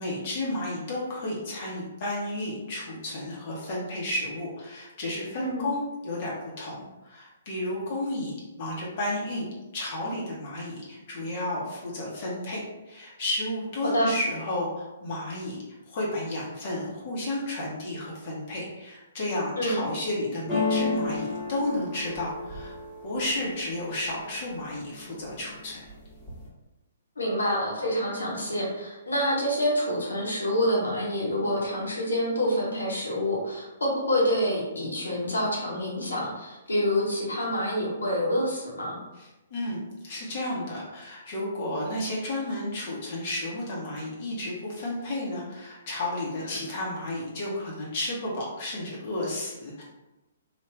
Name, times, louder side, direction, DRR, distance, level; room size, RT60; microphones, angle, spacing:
voice 1, 0.0-9.5 9.7-15.6 15.9-22.7 23.0-25.8 39.2-49.8, left 1 dB, 40° left, -5 dB, 0.9 m, -32 dB
voice 2, 5.4-5.7 13.8-14.1 19.6-19.9 27.2-39.0 46.5-46.7, equal, 70° left, -4 dB, 1.1 m, -27 dB
sound 1, 20.5-24.3 24.8-25.4 25.7-26.5, left 3 dB, 10° left, 1.2 m, -32 dB
3.3 x 2.4 x 3.2 m, 1.0 s
figure-of-eight pair, 120°, 0 cm